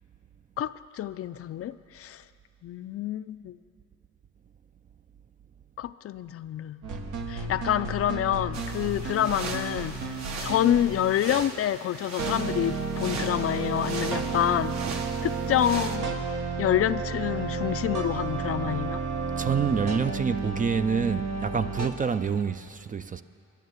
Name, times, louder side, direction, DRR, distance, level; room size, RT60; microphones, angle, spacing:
voice 1, 0.6-2.2 2.6-3.6 5.8-6.8 7.3-10.0 10.4-16.2 16.6-19.0, left 11 dB, 50° left, 0.4 m, -27 dB
sound 1, 6.8-11.1 12.2-21.9, right 4 dB, 80° right, 1.3 m, -32 dB
sound 2, 8.5-16.0, right 4 dB, 60° right, 1.2 m, -39 dB
voice 2, 19.4-23.2, right 6 dB, 30° right, 0.4 m, -27 dB
12.5 x 10.0 x 8.0 m
cardioid pair, 90°, 30 cm